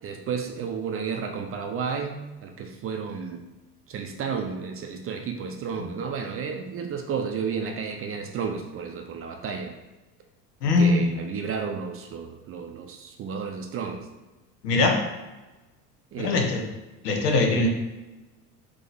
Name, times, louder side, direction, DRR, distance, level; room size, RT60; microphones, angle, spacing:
voice 1, 0.0-3.4 3.9-9.8 10.6-14.1 16.1-16.4, right 6 dB, 30° right, 5 dB, 0.5 m, -32 dB
voice 2, 10.6-11.0 14.6-15.0 16.2-16.6 17.0-17.7, left 3 dB, 75° left, 2 dB, 1.0 m, -21 dB
3.7 x 2.9 x 3.9 m, 1.1 s
hypercardioid pair, 75°, 48 cm